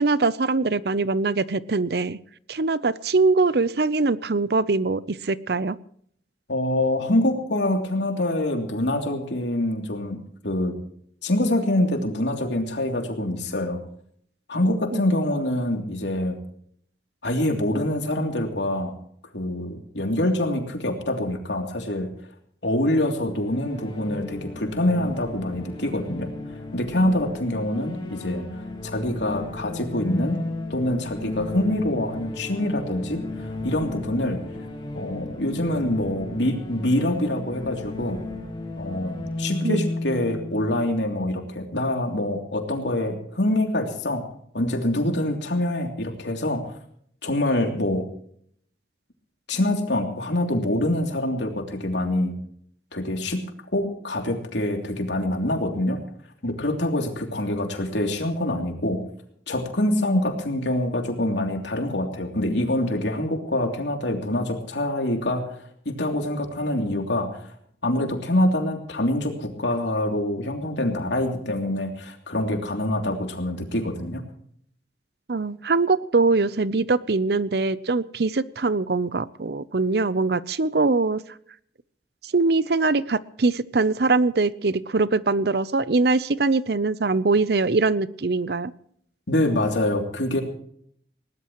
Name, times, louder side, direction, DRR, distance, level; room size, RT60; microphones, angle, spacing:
voice 1, 0.0-2.2 2.5-5.8 14.9-15.0 39.6-39.8 75.3-81.2 82.2-88.7, right 3 dB, 60° right, 18 dB, 0.6 m, -22 dB
voice 2, 6.5-10.7 11.2-13.8 14.5-16.4 17.2-18.9 19.3-22.1 22.6-26.3 26.7-28.4 28.8-30.4 30.7-34.4 34.9-38.2 38.8-44.2 44.5-46.7 47.2-48.1 49.5-52.3 52.9-53.4 53.7-56.0 56.4-59.0 59.5-67.5 67.8-74.2 89.3-90.4, left 1 dB, 75° left, 4 dB, 3.0 m, -25 dB
sound 1, 23.3-41.9, left 2 dB, 25° left, 2.2 m, -34 dB
21.0 x 18.5 x 3.1 m, 0.64 s
head